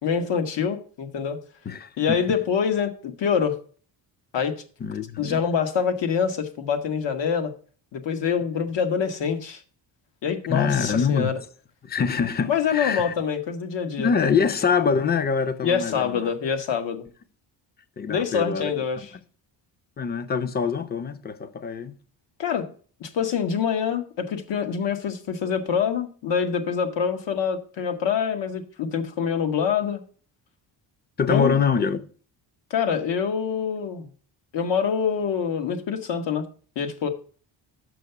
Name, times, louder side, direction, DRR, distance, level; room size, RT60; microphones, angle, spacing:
voice 1, 0.0-1.4 2.0-3.6 4.3-4.5 5.2-7.5 7.9-9.6 10.2-11.4 12.5-14.3 15.6-17.1 18.1-19.1 22.4-22.7 23.0-30.0 31.3-31.6 32.7-34.0 34.5-36.4 36.7-37.1, left 7 dB, 70° left, 1.4 m, -25 dB
voice 2, 1.7-2.2 4.8-5.4 10.5-11.3 11.8-13.1 14.0-16.3 18.0-18.7 20.0-21.9 31.2-32.0, left 6 dB, 20° left, 0.6 m, -24 dB
6.3 x 5.7 x 6.8 m
cardioid pair, 110°, 45 cm